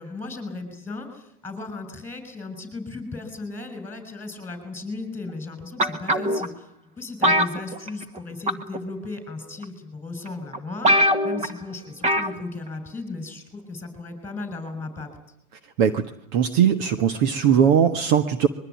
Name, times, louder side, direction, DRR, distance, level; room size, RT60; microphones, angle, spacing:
voice 1, 0.0-6.7 7.0-15.1, left 3 dB, 5° left, 9 dB, 6.5 m, -36 dB
sound 1, 5.8-6.5 7.2-8.2 8.5-8.8 9.6-9.7 10.3-10.4 10.5-10.6 10.8-11.5 12.0-12.4 12.7-12.8, equal, 15° right, 1.7 m, -21 dB
voice 2, 16.3-18.5, right 8 dB, 45° right, 10 dB, 1.6 m, -19 dB
23.0 x 23.0 x 9.4 m, 0.71 s
hypercardioid pair, 135°, 43 cm